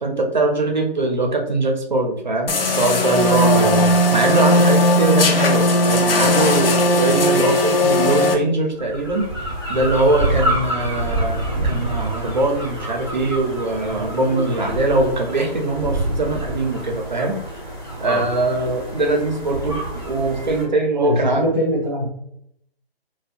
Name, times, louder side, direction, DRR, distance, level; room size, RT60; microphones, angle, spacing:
voice 1, 0.0-17.4 18.0-21.4, right 2 dB, 45° right, 3 dB, 0.4 m, -22 dB
sound 1, 2.5-8.3, left 1 dB, 65° left, 0.5 m, -17 dB
voice 2, 3.5-3.9 18.0-18.2 21.0-22.0, equal, 10° right, -9 dB, 0.8 m, -23 dB
sound 2, 8.8-20.6, right 1 dB, 25° left, 0.6 m, -27 dB
2.6 x 2.1 x 2.4 m, 0.74 s
hypercardioid pair, 175°, 31 cm